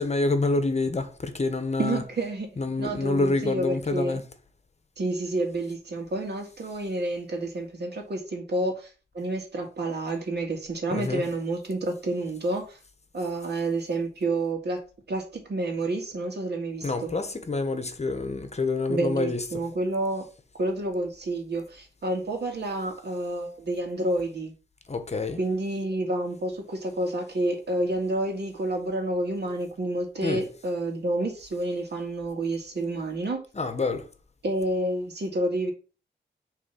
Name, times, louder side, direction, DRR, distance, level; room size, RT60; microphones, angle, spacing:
voice 1, 0.0-2.0 2.6-4.2 10.9-11.3 16.8-19.6 24.9-25.4 30.2-30.4 33.5-34.1, left 3 dB, 35° left, 1.0 m, -27 dB
voice 2, 1.8-2.5 2.8-4.2 5.0-8.9 9.1-12.8 13.1-14.8 15.1-17.1 18.9-20.2 20.6-24.5 25.4-33.4 34.4-35.7, right 2 dB, 60° right, 1.9 m, -29 dB
6.5 x 3.4 x 5.7 m
cardioid pair, 80°, 19 cm